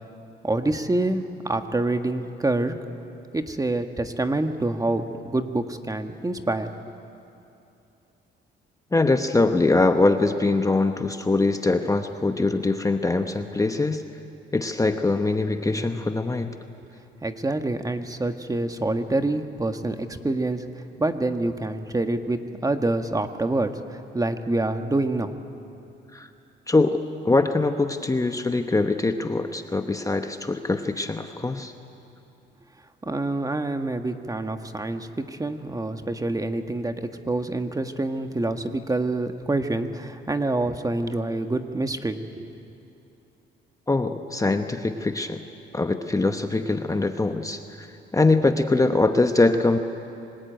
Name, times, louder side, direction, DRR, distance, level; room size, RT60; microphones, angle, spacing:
voice 1, 0.4-2.8 3.3-6.7 17.2-20.6 21.0-25.4 33.0-42.5, right 2 dB, 20° right, 7 dB, 1.4 m, -26 dB
voice 2, 8.9-14.0 14.5-16.5 26.1-26.3 26.7-31.7 43.9-45.4 45.7-47.9 48.1-49.8, left 3 dB, 15° left, 7 dB, 1.0 m, -23 dB
26.0 x 19.5 x 9.1 m, 2.7 s
cardioid pair, 90°, 20 cm